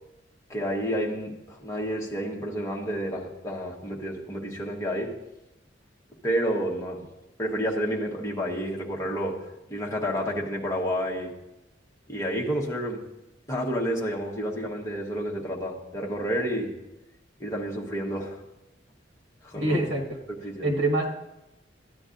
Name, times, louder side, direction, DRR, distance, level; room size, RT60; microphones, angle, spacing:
voice 1, 0.5-5.2 6.2-7.1 7.4-11.4 12.1-13.0 13.5-16.8 17.4-18.4 19.4-19.8 20.4-20.7, equal, 15° left, -2 dB, 1.2 m, -30 dB
voice 2, 19.5-20.0 20.6-21.1, right 2 dB, 75° right, -1 dB, 1.6 m, -24 dB
13.5 x 9.7 x 2.6 m, 0.95 s
head